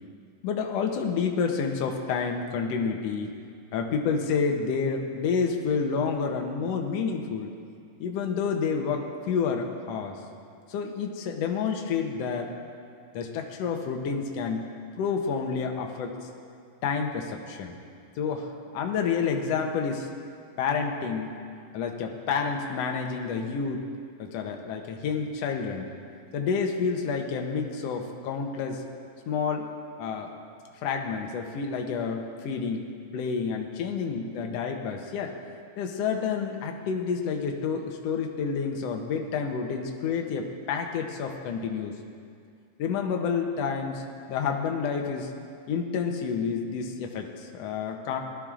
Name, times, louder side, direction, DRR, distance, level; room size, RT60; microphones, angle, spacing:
voice 1, 0.4-3.3 3.7-7.5 8.0-10.2 10.7-12.5 13.1-14.6 15.0-16.2 16.8-17.7 18.2-20.1 20.6-21.3 21.7-23.9 24.2-25.9 26.3-28.8 29.3-29.7 30.0-30.3 30.8-32.8 33.1-35.4 35.8-42.0 42.8-45.3 45.7-48.2, left 5 dB, 80° left, 2 dB, 1.4 m, -29 dB
19.5 x 13.5 x 2.5 m, 2.3 s
omnidirectional pair, 4.0 m